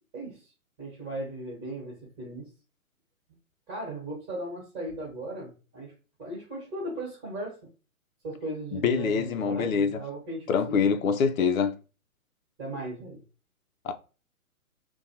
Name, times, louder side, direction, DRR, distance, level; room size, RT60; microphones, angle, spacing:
voice 1, 0.1-0.5 0.8-2.5 3.7-5.9 6.2-7.6 8.2-10.9 12.6-13.2, right 1 dB, 25° right, 1.3 m, -37 dB
voice 2, 8.7-10.0 10.5-11.7 13.8-13.9, left 6 dB, 65° left, 0.5 m, -25 dB
2.5 x 2.2 x 2.7 m
figure-of-eight pair, 135°, 44 cm